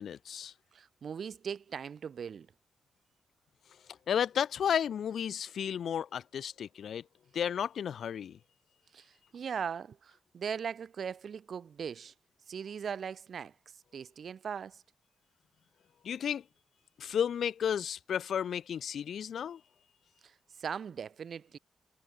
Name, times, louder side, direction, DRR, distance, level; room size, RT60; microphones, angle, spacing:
voice 1, 0.0-0.5 4.1-7.0 7.3-8.4 16.0-16.4 17.0-19.6, left 8 dB, 70° left, 4.2 m, -33 dB
voice 2, 0.7-2.5 8.9-12.1 12.5-13.6 13.9-14.8 20.2-21.6, right 7 dB, 60° right, 2.4 m, -39 dB
cardioid pair, 90°, 0 cm